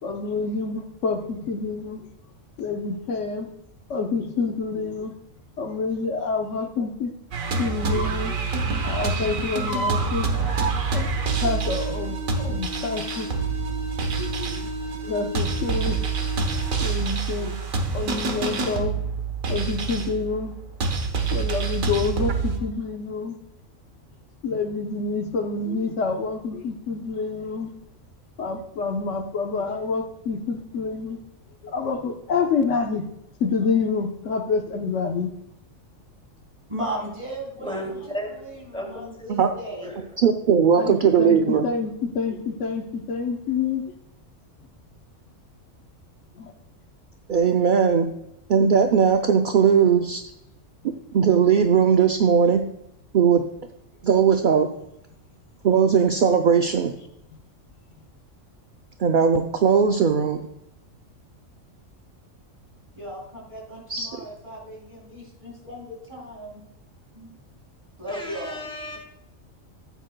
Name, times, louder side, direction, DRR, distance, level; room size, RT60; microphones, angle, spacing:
voice 1, 0.0-2.1 2.6-3.5 3.9-5.1 5.6-7.1 7.6-8.4 8.8-10.3 10.9-11.1 11.4-13.3 14.2-14.7 15.0-16.0 16.8-17.6 17.9-19.0 19.5-20.5 21.3-23.4 24.4-27.7 28.4-31.2 31.6-33.1 33.4-35.3 37.8-37.9 40.7-43.8 46.3-46.5 52.4-52.5, left 4 dB, 65° left, 4 dB, 1.1 m, -27 dB
sound 1, 7.3-22.6, right 4 dB, 85° right, 1.6 m, -26 dB
voice 2, 36.7-39.9 63.0-66.6 67.1-67.4 68.0-68.6 68.9-69.0, right 1 dB, 25° right, -3 dB, 3.4 m, -36 dB
voice 3, 37.6-39.5 39.8-40.3 40.6-40.8 68.1-69.0, equal, 5° left, 0 dB, 2.3 m, -35 dB
voice 4, 40.2-41.6 47.3-48.1 48.5-50.2 51.1-52.6 53.1-53.4 54.0-54.7 55.6-56.9 59.0-60.5 63.9-64.1, right 7 dB, 60° right, 5 dB, 0.5 m, -18 dB
12.5 x 9.0 x 2.2 m, 0.80 s
omnidirectional pair, 1.4 m